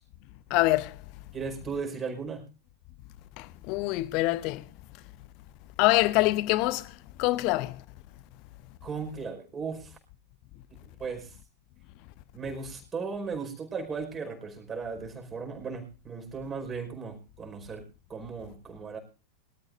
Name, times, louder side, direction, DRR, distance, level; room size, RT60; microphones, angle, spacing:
voice 1, 0.5-0.9 3.7-4.6 5.8-6.8 7.2-7.7, left 19 dB, 45° left, 0.9 m, -24 dB
voice 2, 1.3-2.4 8.8-9.9 10.8-11.3 12.3-17.8 18.1-19.0, right 5 dB, 20° right, 5.0 m, -36 dB
23.5 x 13.5 x 2.6 m
figure-of-eight pair, 90°, 0 cm